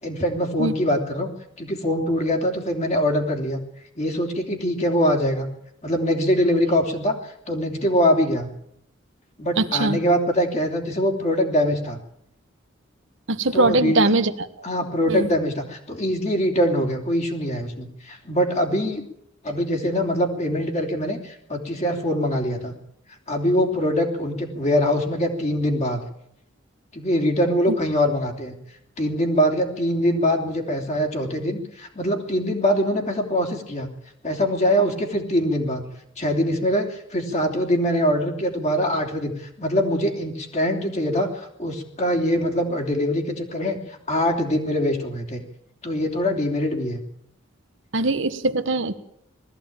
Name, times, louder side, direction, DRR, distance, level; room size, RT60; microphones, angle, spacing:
voice 1, 0.0-1.3 1.6-3.6 4.0-5.5 5.8-8.5 9.4-12.0 13.5-14.0 14.6-19.0 19.4-22.7 23.3-26.0 26.9-28.5 29.0-33.9 34.2-35.8 36.2-45.4 45.8-47.0, equal, 35° left, 3 dB, 3.3 m, -23 dB
voice 2, 9.6-10.0 13.3-14.5 15.1-15.3 47.9-48.9, right 2 dB, 65° right, 10 dB, 1.2 m, -21 dB
20.0 x 14.5 x 8.9 m, 0.73 s
head